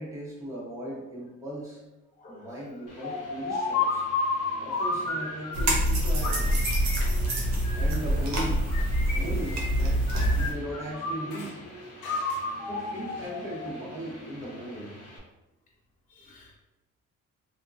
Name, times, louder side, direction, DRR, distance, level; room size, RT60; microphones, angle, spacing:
voice 1, 0.0-1.8 2.3-4.0 4.6-6.7 7.7-8.6 9.1-10.0 10.3-11.5 12.7-14.9, right 1 dB, 10° right, 1.1 m, -37 dB
voice 2, 2.2-2.8 7.3-7.6 16.1-16.6, left 1 dB, 25° left, 0.6 m, -51 dB
sound 1, 2.9-15.2, equal, 55° left, 1.0 m, -47 dB
sound 2, 3.0-5.8 6.2-8.0 8.7-9.8 10.1-11.5 12.0-13.8, left 3 dB, 85° left, 0.6 m, -32 dB
sound 3, 5.5-10.5, equal, 65° right, 0.8 m, -25 dB
2.7 x 2.4 x 2.5 m
cardioid pair, 90°, 30 cm